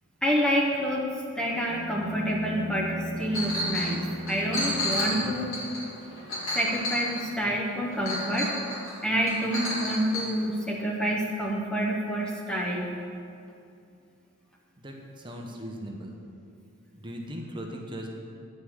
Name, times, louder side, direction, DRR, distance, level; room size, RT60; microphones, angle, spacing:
voice 1, 0.2-1.1 1.4-5.5 6.5-8.5 9.0-12.9, equal, 5° left, -2 dB, 0.9 m, -28 dB
sound 1, 1.5-5.9, equal, 60° right, 1.8 m, -37 dB
Chink clink, 3.3-3.9 4.3-7.4 8.0-8.9 9.3-10.3, left 1 dB, 70° left, 2.8 m, -31 dB
voice 2, 14.8-16.4 16.9-18.1, equal, 25° right, 0 dB, 1.0 m, -39 dB
10.0 x 5.5 x 8.0 m, 2.5 s
head